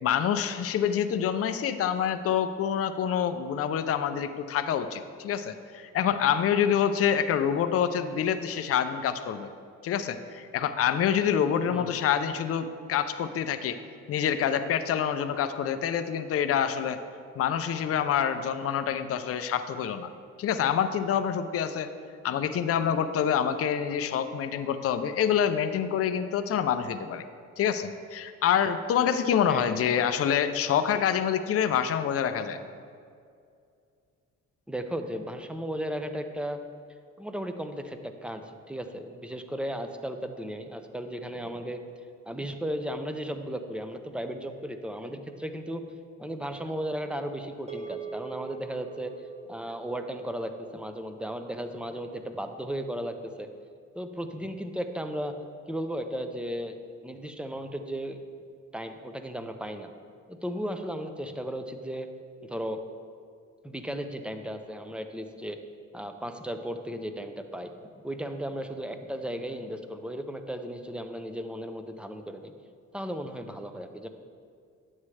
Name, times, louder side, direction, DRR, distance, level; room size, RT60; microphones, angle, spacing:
voice 1, 0.0-9.5 9.8-13.8 14.1-17.0 17.4-20.1 20.4-21.9 22.2-27.2 27.6-32.6, left 8 dB, 50° left, 9 dB, 0.5 m, -26 dB
voice 2, 29.5-29.8 32.6-32.7 34.7-36.6 37.2-41.8 42.3-45.8 46.2-49.2 49.5-53.5 53.9-55.4 55.7-58.2 58.7-59.9 60.3-62.1 62.5-62.8 63.6-65.6 65.9-67.7 68.0-72.5 72.9-74.1, equal, 5° right, 7 dB, 0.6 m, -35 dB
sound 1, 47.7-52.2, right 5 dB, 20° right, 1.4 m, -44 dB
9.6 x 7.3 x 3.3 m, 2.3 s
cardioid pair, 90°, 30 cm